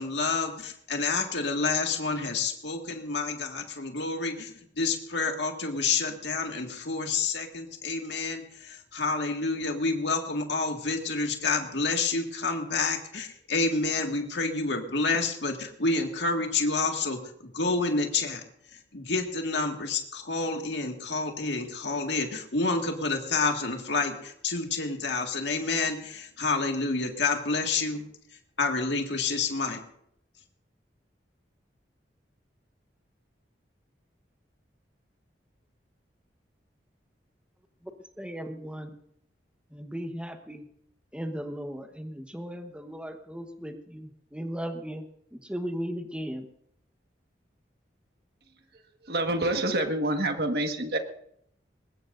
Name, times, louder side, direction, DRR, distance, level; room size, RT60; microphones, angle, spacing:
voice 1, 0.0-17.2 17.5-18.4 18.9-28.0 28.6-29.8, left 3 dB, 80° left, 3 dB, 1.9 m, -29 dB
voice 2, 38.2-38.9 39.7-40.6 41.1-45.0 45.3-46.5, equal, 5° right, 5 dB, 1.1 m, -36 dB
voice 3, 48.7-51.0, right 1 dB, 60° right, 5 dB, 1.6 m, -28 dB
21.5 x 19.5 x 2.6 m, 0.71 s
head